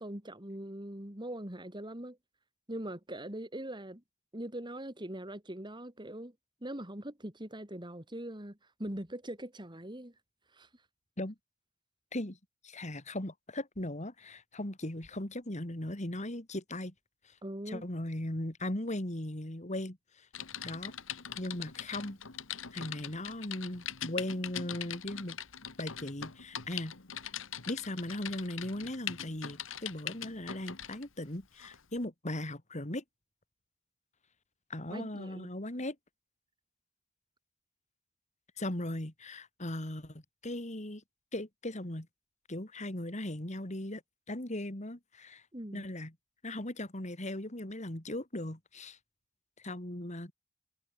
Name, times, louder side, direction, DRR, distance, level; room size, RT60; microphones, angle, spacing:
voice 1, 0.0-2.2 2.7-4.0 4.3-6.3 6.6-10.1 10.5-10.7 17.4-17.8 34.9-35.5 45.5-45.8, right 1 dB, 25° right, 3.3 m, -42 dB
voice 2, 12.6-16.9 17.2-17.3 17.7-20.3 20.6-20.9 21.4-22.2 22.7-25.4 25.8-26.9 27.7-33.0 34.7-36.0 38.6-41.0 41.3-42.1 42.5-44.0 44.3-45.4 45.7-46.1 46.4-49.0 49.6-50.3, left 1 dB, 35° left, 3.0 m, -38 dB
Typing, 20.3-31.1 31.6-31.8, left 9 dB, 70° left, 1.9 m, -42 dB
head